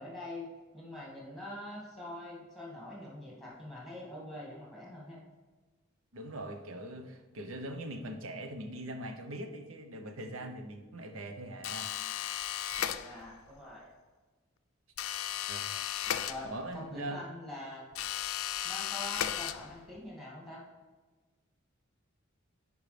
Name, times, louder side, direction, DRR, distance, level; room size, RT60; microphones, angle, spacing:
voice 1, 0.0-5.2 13.0-13.9 16.3-16.5 16.7-17.8 18.6-20.6, left 1 dB, ahead, -5 dB, 2.2 m, -44 dB
voice 2, 6.1-11.9 15.5-15.7 16.4-17.2, right 1 dB, 85° right, 6 dB, 0.8 m, -41 dB
sound 1, 11.6-13.5 15.0-16.9 17.9-20.0, left 10 dB, 85° left, 0.4 m, -35 dB
10.0 x 4.8 x 3.3 m, 1.3 s
head